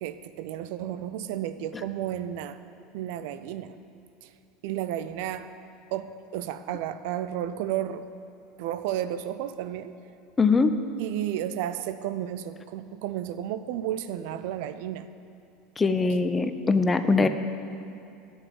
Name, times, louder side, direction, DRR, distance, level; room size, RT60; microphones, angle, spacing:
voice 1, 0.0-2.6 2.9-3.8 4.2-4.3 4.6-5.5 5.9-8.1 8.6-9.9 11.0-15.1, right 11 dB, 60° right, 12 dB, 0.5 m, -32 dB
voice 2, 10.4-10.7 15.8-17.3, left 4 dB, 20° left, 9 dB, 0.7 m, -22 dB
10.5 x 7.3 x 9.4 m, 2.6 s
figure-of-eight pair, 75°, 0 cm